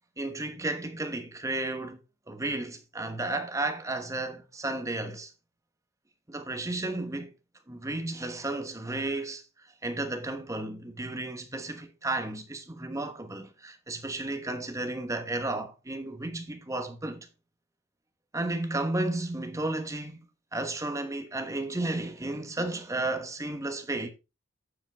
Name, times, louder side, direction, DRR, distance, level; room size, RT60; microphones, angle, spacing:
voice 1, 0.2-2.0 2.3-5.3 6.3-7.3 7.7-9.4 9.8-17.3 18.3-20.2 20.5-24.1, right 2 dB, 15° right, 1.1 m, -33 dB
8.6 x 7.4 x 3.4 m
head